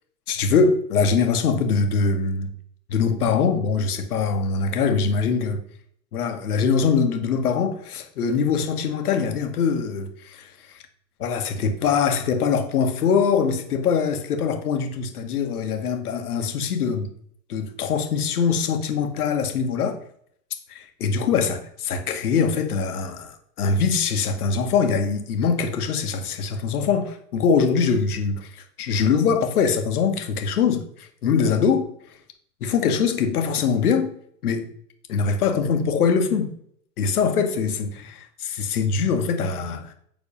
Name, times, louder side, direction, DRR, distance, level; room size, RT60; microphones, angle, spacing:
voice 1, 0.3-2.5 2.9-5.6 6.1-10.8 11.2-17.1 17.5-20.0 20.7-31.9 32.6-34.1 34.4-34.7 35.1-36.5 37.0-39.9, left 5 dB, 60° left, 1.4 m, -23 dB
7.3 x 4.2 x 5.5 m
hypercardioid pair, 120°, 49 cm